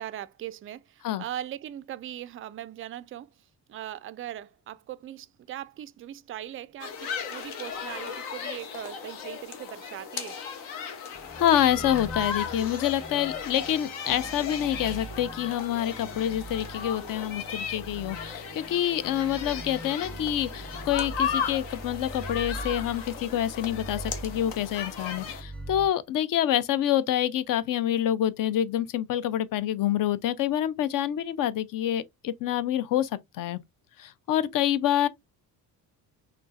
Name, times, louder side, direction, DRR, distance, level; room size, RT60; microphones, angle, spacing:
voice 1, 0.0-3.3 3.7-10.4, right 12 dB, 30° right, 0.3 m, -39 dB
sound 1, 6.8-25.4, left 7 dB, 65° left, 1.1 m, -36 dB
sound 2, 11.1-25.9, right 2 dB, ahead, 0.8 m, -42 dB
voice 2, 11.3-33.6 34.0-35.1, left 11 dB, 45° left, 0.5 m, -27 dB
4.4 x 3.2 x 2.5 m
hypercardioid pair, 55°, 48 cm